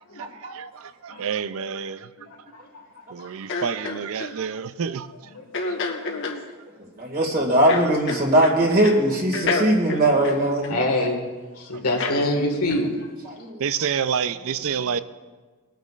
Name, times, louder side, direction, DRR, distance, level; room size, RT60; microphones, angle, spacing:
voice 1, 0.4-2.1 3.1-5.3 5.7-5.8 13.6-15.0, right 7 dB, 65° right, 0.5 m, -28 dB
sound 1, 3.5-4.3 5.5-6.4 7.7-8.6 8.8-9.0 9.3-11.1 12.0-12.2 12.7-12.9, left 3 dB, 60° left, 1.1 m, -28 dB
voice 2, 5.8-6.2 10.7-11.3 11.6-13.1, left 1 dB, 90° left, 1.6 m, -25 dB
voice 3, 7.0-10.8 13.2-13.7 14.7-14.8, right 1 dB, 45° right, 2.0 m, -20 dB
21.0 x 9.2 x 2.4 m
head